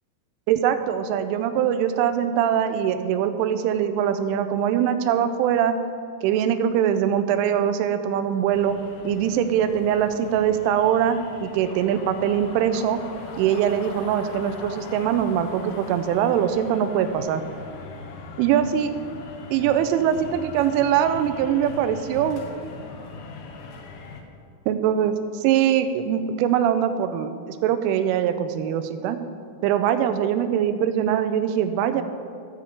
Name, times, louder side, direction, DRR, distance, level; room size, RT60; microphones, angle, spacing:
voice 1, 0.5-5.8 6.2-8.8 9.0-13.0 13.4-17.4 18.4-18.9 19.5-22.4 24.7-29.2 29.6-32.0, right 9 dB, 85° right, 9 dB, 3.1 m, -22 dB
sound 1, 8.5-24.2, left 3 dB, 80° left, 2.3 m, -40 dB
14.5 x 4.9 x 7.0 m, 2.5 s
omnidirectional pair, 5.6 m